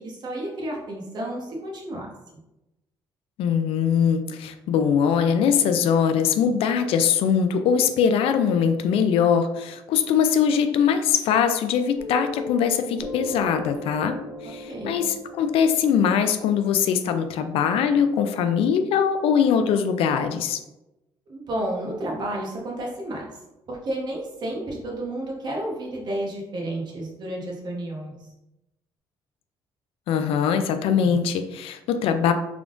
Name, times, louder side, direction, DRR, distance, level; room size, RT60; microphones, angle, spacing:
voice 1, 0.0-2.1 14.7-15.0 21.3-23.2 23.7-28.2, right 1 dB, 45° right, -2 dB, 1.0 m, -31 dB
voice 2, 3.4-14.2 14.4-20.6 30.1-32.3, left 7 dB, 80° left, 9 dB, 0.4 m, -22 dB
Piano, 12.0-19.0, left 2 dB, 25° left, 1.0 m, -39 dB
3.5 x 3.5 x 2.5 m, 0.95 s
cardioid pair, 115°, 10 cm